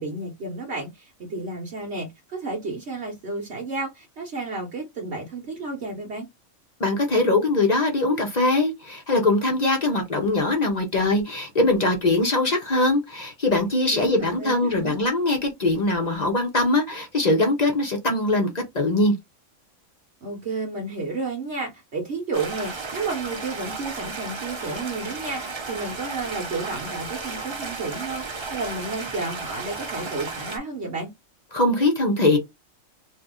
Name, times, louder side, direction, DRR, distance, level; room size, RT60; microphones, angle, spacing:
voice 1, 0.0-6.3 13.9-15.0 20.2-31.1, right 3 dB, 55° right, 1.1 m, -32 dB
voice 2, 6.8-19.2 31.5-32.4, left 2 dB, 40° left, 0.7 m, -22 dB
Stream, 22.3-30.6, right 4 dB, 40° right, 0.4 m, -34 dB
2.7 x 2.6 x 3.6 m
omnidirectional pair, 1.4 m